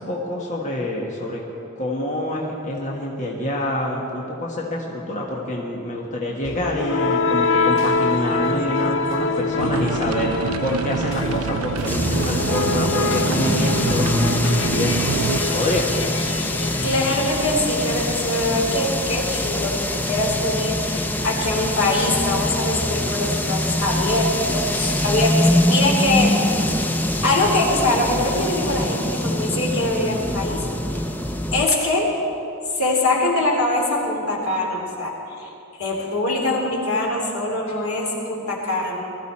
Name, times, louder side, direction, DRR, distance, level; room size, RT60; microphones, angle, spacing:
voice 1, 0.0-1.4 1.8-10.3 10.6-14.3 14.7-15.1 15.5-15.9, left 1 dB, 35° left, -2 dB, 1.4 m, -26 dB
sound 1, 6.4-18.3, left 3 dB, 60° left, 0.7 m, -25 dB
sound 2, 9.6-15.4, right 7 dB, 75° right, 0.3 m, -27 dB
sound 3, 11.8-31.7, left 1 dB, 10° left, 0.6 m, -24 dB
voice 2, 16.8-26.9 27.2-30.6 31.5-32.1 32.7-35.5 35.8-39.0, left 2 dB, 80° left, -2 dB, 3.0 m, -23 dB
20.0 x 14.0 x 4.3 m, 2.9 s
head